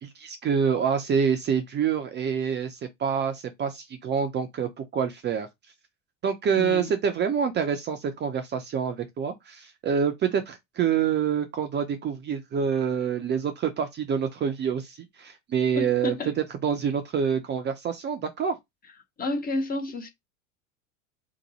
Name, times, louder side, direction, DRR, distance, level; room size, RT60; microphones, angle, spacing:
voice 1, 0.0-5.5 6.2-16.1 16.6-18.6, right 7 dB, 25° right, 0.5 m, -27 dB
voice 2, 6.6-6.9 15.7-16.3 19.2-20.1, left 2 dB, 20° left, 0.7 m, -30 dB
2.9 x 2.2 x 4.0 m
hypercardioid pair, 85°, 42 cm